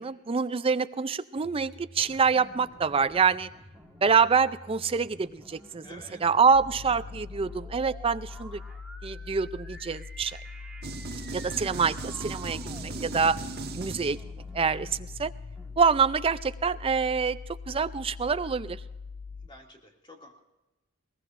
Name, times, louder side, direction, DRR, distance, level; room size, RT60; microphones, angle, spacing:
voice 1, 0.0-3.5 4.0-5.8 6.2-8.6 9.0-10.4 11.3-13.4 13.7-14.2 14.5-15.3 15.8-17.4 17.7-18.8, right 5 dB, 25° right, 13 dB, 0.4 m, -26 dB
sound 1, 1.4-15.8, right 1 dB, 5° right, 1.6 m, -50 dB
voice 2, 5.8-6.2 11.3-11.7 19.4-20.4, left 1 dB, 25° left, 0 dB, 2.4 m, -50 dB
sound 2, 6.5-19.5, left 5 dB, 55° left, 0.5 m, -42 dB
sound 3, 10.8-14.5, right 3 dB, 50° right, 1.3 m, -38 dB
21.0 x 19.0 x 2.6 m, 1.0 s
head